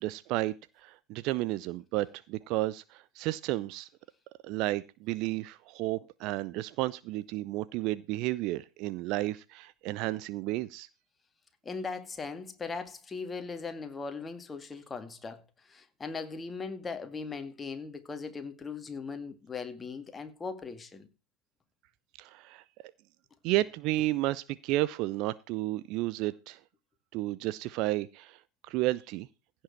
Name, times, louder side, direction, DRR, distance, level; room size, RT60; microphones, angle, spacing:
voice 1, 0.0-3.9 4.4-10.9 22.2-22.6 23.4-26.6 27.1-28.4 28.6-29.3, right 17 dB, 45° right, 0.5 m, -32 dB
voice 2, 11.6-21.1, left 4 dB, 15° left, 2.2 m, -39 dB
16.0 x 7.4 x 4.6 m
figure-of-eight pair, 85°, 0 cm